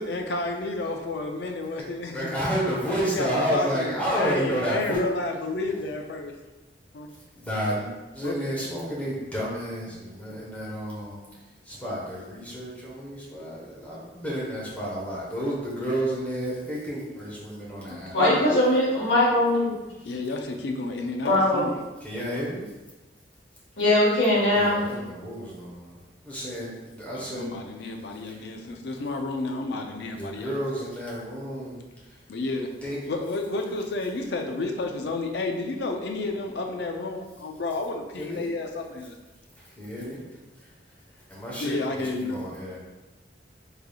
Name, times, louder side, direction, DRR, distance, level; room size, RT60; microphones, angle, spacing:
voice 1, 0.0-2.4 2.9-6.3 6.9-7.1 8.2-8.5 17.9-18.7 20.0-21.7 27.1-30.5 32.3-32.7 33.1-39.2 41.6-42.4, left 2 dB, 65° left, 3 dB, 0.4 m, -31 dB
voice 2, 2.1-5.0 7.3-7.9 8.1-11.2 11.6-18.1 22.0-22.6 24.6-26.0 26.2-27.6 28.3-28.4 30.1-31.8 32.1-32.2 32.8-33.0 38.2-38.5 39.6-40.2 41.3-42.8, equal, 10° left, -7 dB, 0.9 m, -31 dB
voice 3, 18.1-19.7 21.2-21.7 23.8-24.8, left 1 dB, 85° left, -7 dB, 1.3 m, -21 dB
3.5 x 3.3 x 2.3 m, 1.1 s
head